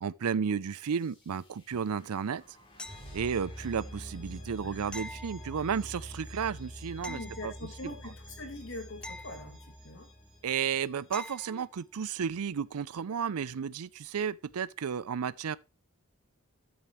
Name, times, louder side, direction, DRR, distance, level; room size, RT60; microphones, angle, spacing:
voice 1, 0.0-2.4 3.1-7.5 10.4-15.6, right 7 dB, 90° right, 0.5 m, -33 dB
sound 1, 0.7-11.5, equal, 25° left, 3.2 m, -47 dB
sound 2, 2.8-3.6 4.9-6.0 7.0-8.1 9.0-10.1 11.1-11.7 14.5-14.6, left 1 dB, 5° left, 0.5 m, -46 dB
voice 2, 4.6-5.1 7.1-10.1, left 2 dB, 60° left, 2.7 m, -43 dB
13.0 x 7.0 x 3.1 m
head